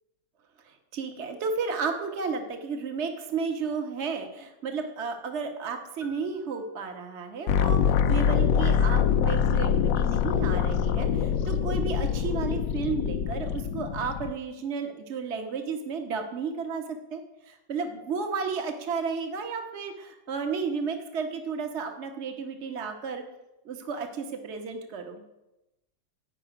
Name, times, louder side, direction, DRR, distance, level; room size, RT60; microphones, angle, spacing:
voice 1, 0.7-17.2 17.5-23.2 23.6-25.2, right 5 dB, 40° right, 5 dB, 1.5 m, -33 dB
sound 1, 6.0-7.5, left 2 dB, 80° right, 4.4 m, -55 dB
sound 2, 7.5-14.3, left 8 dB, 80° left, 1.4 m, -24 dB
15.5 x 5.5 x 10.0 m, 0.95 s
omnidirectional pair, 2.0 m